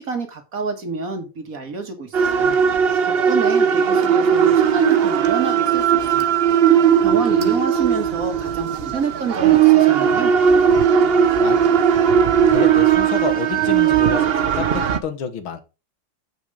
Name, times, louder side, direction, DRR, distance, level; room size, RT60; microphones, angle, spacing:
voice 1, 0.0-2.6 3.0-6.4 7.0-10.3, right 4 dB, 45° right, 1.9 m, -28 dB
sound 1, 2.1-15.0, right 8 dB, 80° right, 0.5 m, -17 dB
voice 2, 7.1-7.6 11.4-11.7 12.5-15.6, left 6 dB, 85° left, 2.2 m, -29 dB
7.7 x 6.4 x 4.9 m
omnidirectional pair, 2.1 m